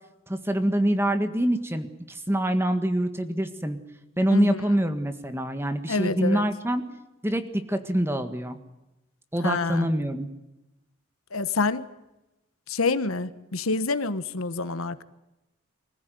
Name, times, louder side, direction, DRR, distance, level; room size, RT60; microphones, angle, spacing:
voice 1, 0.3-3.8 4.2-6.8 7.2-8.6 9.3-10.3, right 1 dB, 10° right, 8 dB, 1.7 m, -25 dB
voice 2, 5.9-6.4 9.4-9.9 11.3-11.8 12.7-15.0, left 3 dB, 90° left, 12 dB, 1.2 m, -27 dB
24.5 x 15.5 x 9.4 m, 0.96 s
head